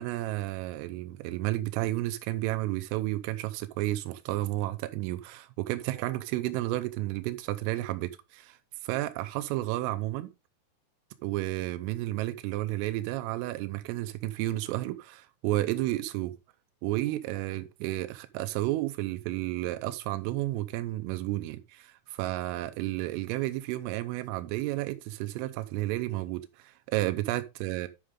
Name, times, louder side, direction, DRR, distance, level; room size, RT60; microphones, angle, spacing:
voice 1, 0.0-8.6 8.8-10.3 11.2-16.4 16.8-27.9, right 16 dB, 90° right, 3.3 m, -32 dB
10.5 x 6.5 x 3.6 m
omnidirectional pair, 5.7 m